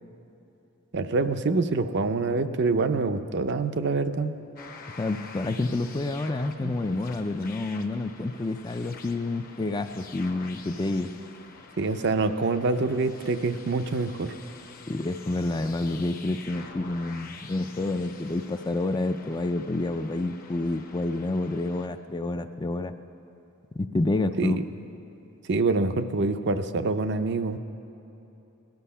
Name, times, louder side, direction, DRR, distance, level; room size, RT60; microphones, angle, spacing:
voice 1, 0.9-4.3 6.6-6.7 11.8-14.3 24.4-24.6 25.5-27.6, right 3 dB, 55° right, 9 dB, 0.6 m, -26 dB
sound 1, 4.6-21.9, left 4 dB, 45° left, 1.0 m, -47 dB
voice 2, 5.0-11.1 14.9-22.9 23.7-24.6, left 2 dB, 20° left, 9 dB, 0.4 m, -28 dB
18.0 x 12.0 x 5.6 m, 3.0 s
head